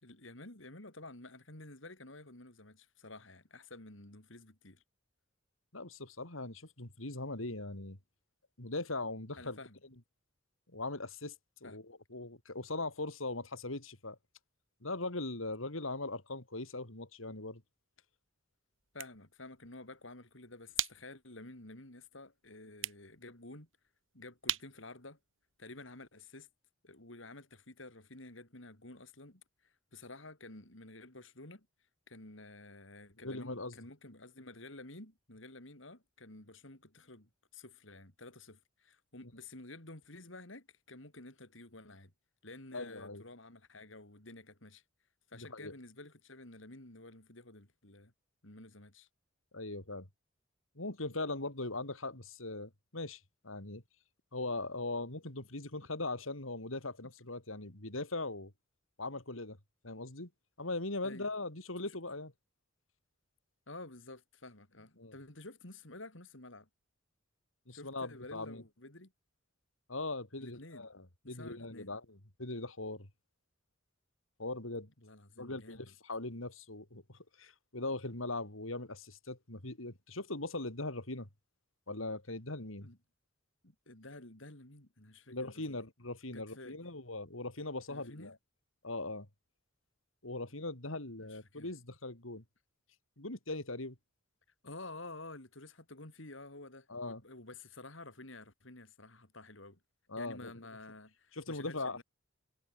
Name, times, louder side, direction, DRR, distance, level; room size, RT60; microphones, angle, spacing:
voice 1, 0.0-4.8 9.3-9.8 11.6-11.8 18.9-23.7 24.1-25.2 25.6-26.5 26.8-31.7 32.1-42.1 42.4-44.8 45.3-48.1 48.4-49.1 61.0-61.3 63.7-66.7 67.7-69.1 70.4-70.9 71.2-71.9 75.0-75.9 82.8-83.0 83.6-85.8 86.3-86.8 87.9-88.4 91.2-91.7 94.6-99.8 100.2-102.0, left 2 dB, 70° left, 4.3 m, -51 dB
voice 2, 5.7-8.0 8.6-9.6 10.7-11.3 11.6-14.2 14.8-17.6 33.2-33.7 42.7-43.2 45.3-45.7 49.5-50.1 50.8-53.8 54.3-58.5 59.0-59.6 59.8-60.3 60.6-62.3 65.0-65.1 67.7-68.6 69.9-73.1 74.4-74.9 75.4-81.3 81.9-82.9 85.3-88.3 88.8-89.3 90.2-92.4 93.2-94.0 96.9-97.2 100.1-100.6 101.3-102.0, left 2 dB, 90° left, 4.3 m, -40 dB
sound 1, 18.7-26.1, right 13 dB, 75° right, 6.5 m, -44 dB
head